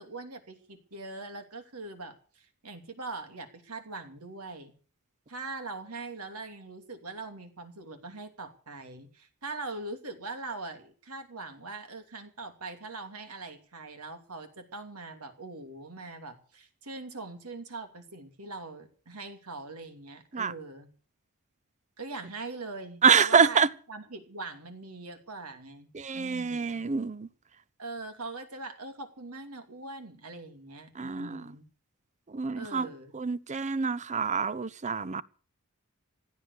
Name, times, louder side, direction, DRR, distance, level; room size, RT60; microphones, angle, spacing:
voice 1, 0.0-4.7 5.3-20.9 22.0-23.6 23.9-26.8 27.8-31.6 32.5-33.2, right 3 dB, 85° right, 2.8 m, -42 dB
voice 2, 23.0-23.7 25.9-27.3 31.0-31.4 32.3-32.9 33.1-35.2, right 6 dB, 35° right, 0.6 m, -26 dB
16.0 x 9.6 x 8.2 m
head